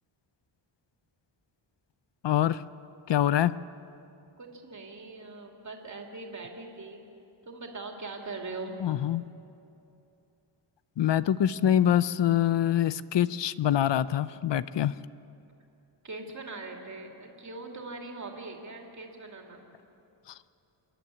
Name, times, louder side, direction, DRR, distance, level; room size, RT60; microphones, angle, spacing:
voice 1, 2.2-2.6 3.1-3.5 8.8-9.2 11.0-14.9, left 11 dB, 60° left, 16 dB, 0.6 m, -25 dB
voice 2, 4.4-7.0 7.4-8.8 16.0-19.6, right 3 dB, 35° right, 1 dB, 2.6 m, -41 dB
26.5 x 11.5 x 9.8 m, 2.8 s
wide cardioid pair, 135°, 48 cm